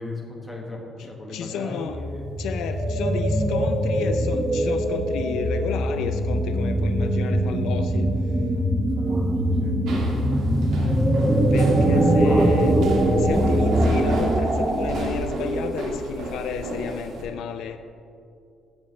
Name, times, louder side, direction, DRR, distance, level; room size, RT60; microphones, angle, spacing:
voice 1, 0.0-2.2 8.9-10.1 12.3-12.4, left 2 dB, 5° left, -2 dB, 1.3 m, -37 dB
voice 2, 1.0-2.0 2.4-8.1 11.5-17.8, left 7 dB, 75° left, 8 dB, 0.4 m, -32 dB
sound 1, 1.9-16.0, right 1 dB, 20° right, 0.7 m, -22 dB
sound 2, 9.9-17.2, right 1 dB, 80° right, 2.0 m, -33 dB
13.5 x 7.1 x 3.2 m, 2.5 s
cardioid pair, 165°, 0 cm